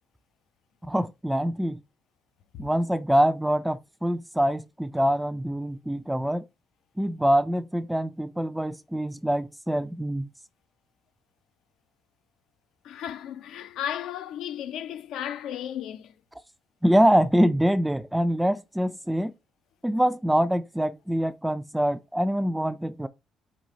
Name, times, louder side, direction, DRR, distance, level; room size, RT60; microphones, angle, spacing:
voice 1, 0.9-1.8 2.6-6.5 7.0-10.3 16.8-19.3 19.8-23.1, equal, 5° right, 0.3 m, -24 dB
voice 2, 12.8-16.2, left 10 dB, 75° left, 0.5 m, -34 dB
5.2 x 2.9 x 3.0 m
cardioid pair, 135°, 0 cm